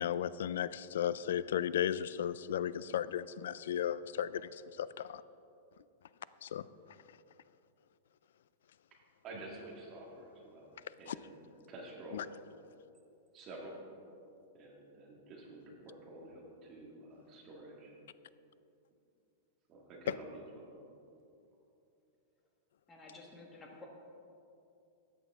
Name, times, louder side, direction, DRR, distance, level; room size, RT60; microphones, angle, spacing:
voice 1, 0.0-4.4 4.8-5.2 6.4-6.6, left 10 dB, 80° left, 17 dB, 0.4 m, -35 dB
voice 2, 9.2-12.2 13.3-13.8 14.5-17.9 19.7-20.7, right 2 dB, 25° right, -2 dB, 1.7 m, -50 dB
voice 3, 22.9-23.9, left 2 dB, 10° left, -1 dB, 1.5 m, -52 dB
13.5 x 9.3 x 3.6 m, 2.7 s
supercardioid pair, 165°, 0 cm